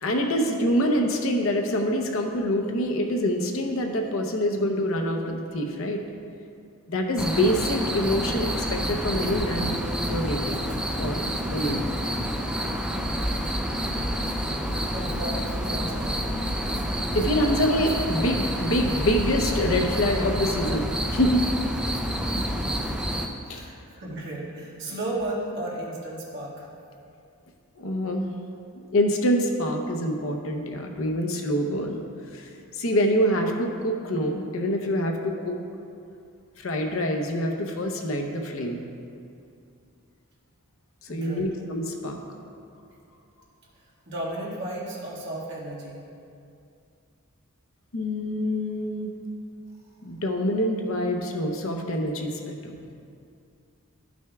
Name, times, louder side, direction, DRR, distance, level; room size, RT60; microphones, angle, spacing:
voice 1, 0.0-6.0 6.9-9.7 10.1-10.7 11.0-11.2 11.5-11.8 17.1-21.5 23.5-23.7 27.8-28.3 28.9-32.0 32.3-32.5 32.8-35.5 36.6-38.8 41.1-42.2 47.9-49.1 50.0-52.9, equal, 65° left, 3 dB, 0.8 m, -26 dB
sound 1, 7.2-23.3, equal, 5° right, 0.4 m, -28 dB
voice 2, 14.4-16.3 22.3-22.9 23.4-26.7 41.1-41.5 44.1-46.0, right 1 dB, 55° right, -6 dB, 1.8 m, -34 dB
12.5 x 6.2 x 2.3 m, 2.5 s
head